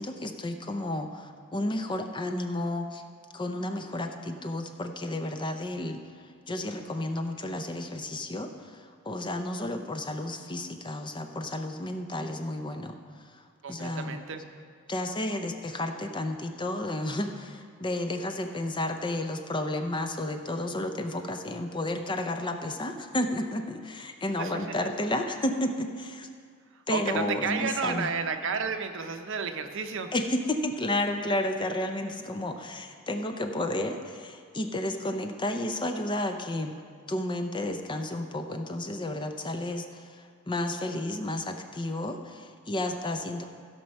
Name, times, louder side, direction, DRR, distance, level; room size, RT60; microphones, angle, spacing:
voice 1, 0.0-3.0 3.3-6.0 6.5-14.2 14.9-26.3 26.9-28.1 30.1-36.8 37.1-43.4, left 1 dB, 20° left, 6 dB, 0.5 m, -32 dB
voice 2, 13.6-14.4 24.4-24.5 24.8-24.9 26.9-30.1, right 5 dB, 60° right, 7 dB, 0.7 m, -31 dB
16.0 x 5.8 x 5.4 m, 2.1 s
head